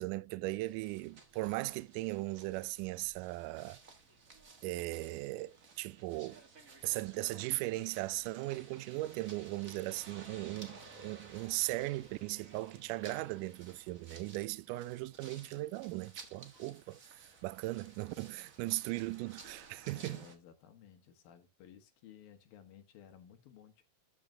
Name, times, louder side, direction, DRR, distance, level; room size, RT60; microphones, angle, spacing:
voice 1, 0.0-3.8 4.6-6.4 6.8-17.0 17.4-20.3, right 20 dB, 80° right, 2.0 m, -38 dB
sound 1, 0.6-20.4, right 4 dB, 55° right, 0.9 m, -56 dB
voice 2, 19.9-23.8, left 9 dB, 80° left, 3.2 m, -57 dB
13.0 x 6.4 x 2.8 m
omnidirectional pair, 4.1 m